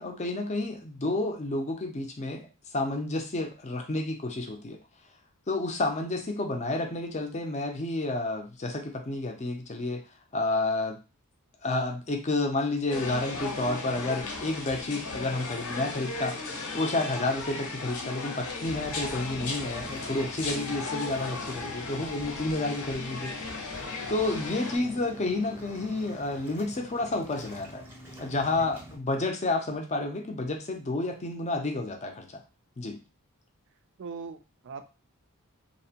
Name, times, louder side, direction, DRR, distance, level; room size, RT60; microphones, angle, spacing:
voice 1, 0.0-2.5 2.7-4.8 5.5-10.0 10.3-11.0 11.6-23.3 24.1-27.8 28.2-32.3 32.8-33.0, left 2 dB, 30° left, 3 dB, 0.5 m, -30 dB
sound 1, 12.9-24.8, left 3 dB, 70° left, 0.7 m, -36 dB
Waves surf, 18.7-28.9, equal, 10° right, 0.6 m, -48 dB
voice 2, 34.0-34.8, right 5 dB, 55° right, 7 dB, 0.4 m, -40 dB
2.6 x 2.0 x 2.8 m, 0.31 s
head